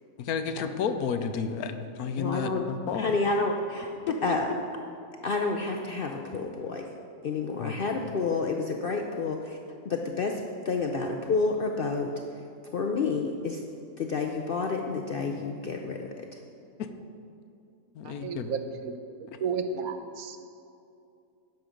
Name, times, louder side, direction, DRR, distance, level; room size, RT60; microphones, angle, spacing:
voice 1, 0.2-3.2 4.1-4.4 7.6-7.7 16.8-16.9 17.9-18.5, left 6 dB, 85° left, 9 dB, 1.1 m, -31 dB
voice 2, 2.2-2.6 2.9-3.9 4.2-4.5 5.2-6.9 7.2-9.6 9.8-13.6 14.0-16.4, left 4 dB, 65° left, 3 dB, 0.5 m, -29 dB
voice 3, 18.0-18.9 19.4-20.6, right 5 dB, 75° right, 7 dB, 1.2 m, -33 dB
10.5 x 6.9 x 5.1 m, 2.6 s
omnidirectional pair, 1.6 m